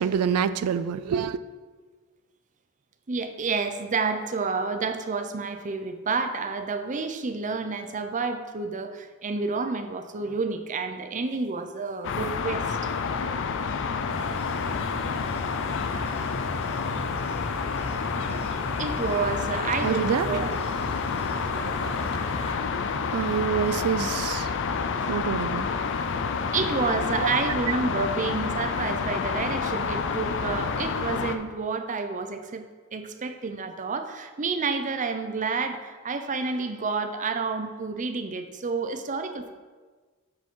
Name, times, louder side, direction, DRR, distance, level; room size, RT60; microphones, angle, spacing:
voice 1, 0.0-1.4 19.8-20.4 21.5-22.0 23.1-24.5 25.1-25.7 26.3-26.4 27.2-27.3, right 7 dB, 85° right, 0.3 m, -27 dB
voice 2, 3.1-12.8 18.8-20.6 25.0-25.1 26.5-32.6 32.9-39.5, right 4 dB, 35° right, 0.6 m, -29 dB
sound 1, 12.0-31.4, left 5 dB, 55° left, 0.5 m, -29 dB
sound 2, 14.1-22.5, equal, 30° left, 1.1 m, -39 dB
9.5 x 5.0 x 3.8 m
head